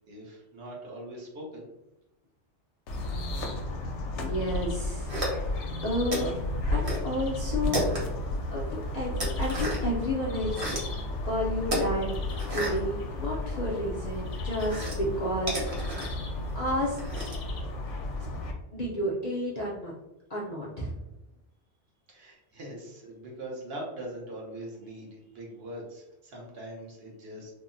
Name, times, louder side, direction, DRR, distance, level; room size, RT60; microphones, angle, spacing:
voice 1, 0.1-1.7 22.1-27.5, right 1 dB, 60° right, -2 dB, 0.9 m, -42 dB
sound 1, 2.9-18.5, left 2 dB, 80° left, 0.9 m, -33 dB
voice 2, 4.2-5.1 5.4-6.3 6.7-7.8 8.5-12.1 12.5-15.7 16.0-16.3 16.5-17.0 18.7-19.9 20.3-20.9, equal, 50° left, -6 dB, 0.5 m, -31 dB
sound 2, 5.1-5.7 6.1-7.1 7.4-8.3 8.7-10.0 10.3-11.0 11.6-13.7 14.0-17.5, right 1 dB, 35° right, 0.7 m, -33 dB
3.5 x 2.0 x 2.5 m, 0.89 s
omnidirectional pair, 1.2 m